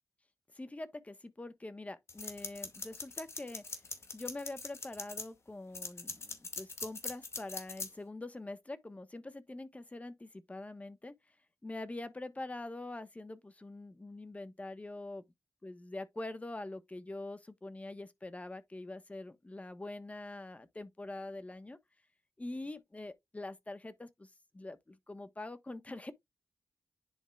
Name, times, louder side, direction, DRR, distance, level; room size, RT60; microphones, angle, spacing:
voice 1, 0.5-3.6 4.1-11.1 11.6-15.2 15.6-21.8 22.4-26.1, left 2 dB, 25° left, 1.3 m, -44 dB
sound 1, 2.1-5.3 5.7-7.9, left 4 dB, 50° left, 2.2 m, -41 dB
10.0 x 4.9 x 2.4 m
cardioid pair, 70°, 6 cm